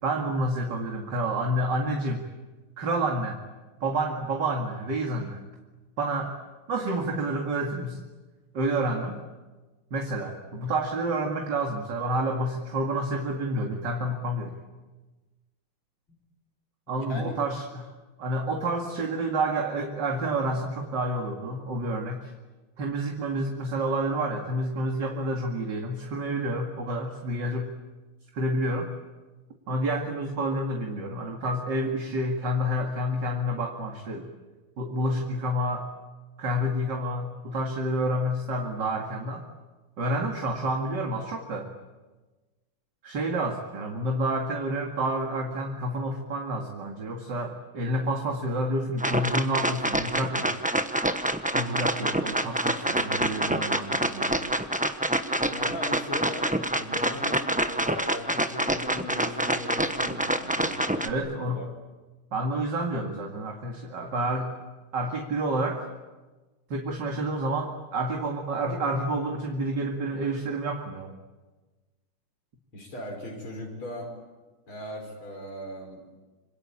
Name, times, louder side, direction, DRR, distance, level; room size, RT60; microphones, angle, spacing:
voice 1, 0.0-2.3 2.8-3.4 3.8-5.4 6.0-6.3 6.7-8.0 8.5-9.2 9.9-14.6 16.9-17.9 18.2-22.3 22.8-27.7 28.3-28.9 29.7-34.3 34.8-35.9 36.4-39.4 40.0-41.7 43.0-50.5 51.5-54.6 61.0-61.7 62.3-64.5 64.9-65.9 66.7-71.2, right 1 dB, 55° right, 2 dB, 2.8 m, -29 dB
voice 2, 16.9-17.4 55.5-61.7 72.7-74.1 74.7-76.2, left 1 dB, 80° left, 1 dB, 6.0 m, -39 dB
sound 1, 49.0-61.1, right 1 dB, 10° right, 0.4 m, -27 dB
27.0 x 25.5 x 8.6 m, 1.2 s
omnidirectional pair, 2.3 m